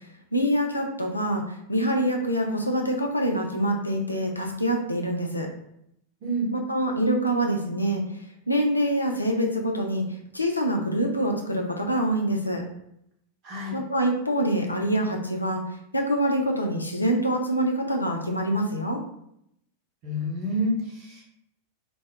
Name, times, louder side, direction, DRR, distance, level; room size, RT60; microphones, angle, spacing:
voice 1, 0.3-5.5 6.5-8.0 8.5-10.0 10.3-12.6 13.7-15.6 15.9-19.0, right 1 dB, 85° left, 2 dB, 0.4 m, -25 dB
voice 2, 6.2-6.5 13.4-13.8 20.0-21.3, equal, 40° right, -3 dB, 1.0 m, -28 dB
2.6 x 2.1 x 3.3 m, 0.76 s
figure-of-eight pair, 90°, 0 cm